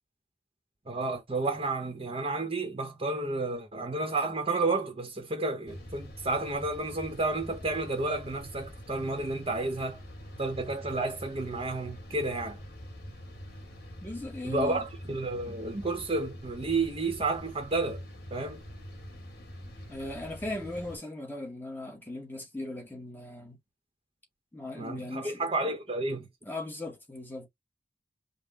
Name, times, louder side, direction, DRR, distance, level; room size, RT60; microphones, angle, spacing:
voice 1, 0.9-10.0 10.4-12.6 14.4-18.0 18.3-18.6 24.7-26.3, right 2 dB, 35° right, 0.9 m, -31 dB
sound 1, 5.7-21.0, equal, 60° left, 2.0 m, -45 dB
voice 2, 14.0-14.8 19.9-23.6 24.5-25.7 26.4-27.5, left 2 dB, 10° left, 0.9 m, -38 dB
5.3 x 2.2 x 4.0 m
head